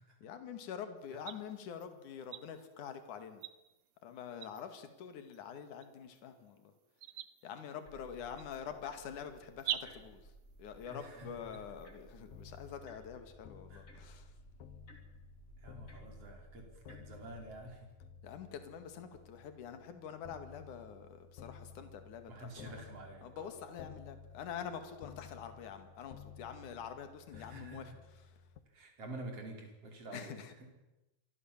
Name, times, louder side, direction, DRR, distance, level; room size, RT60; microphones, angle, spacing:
voice 1, 0.2-3.4 4.0-6.7 7.4-10.3 10.6-14.4 18.2-22.7 23.2-27.9 28.2-28.5 30.1-30.5, left 7 dB, 65° left, 8 dB, 3.5 m, -46 dB
sound 1, 1.0-12.8, right 12 dB, 90° right, 2.7 m, -48 dB
sound 2, 7.8-17.8, right 1 dB, 20° left, 4.2 m, -58 dB
voice 2, 10.9-11.3 13.7-14.1 15.6-17.9 22.3-23.5 27.3-28.0 28.7-30.7, right 2 dB, 45° right, 2 dB, 5.9 m, -49 dB
sound 3, 12.3-28.6, left 6 dB, 90° left, 3.0 m, -55 dB
27.5 x 23.5 x 7.4 m, 0.99 s
omnidirectional pair, 3.8 m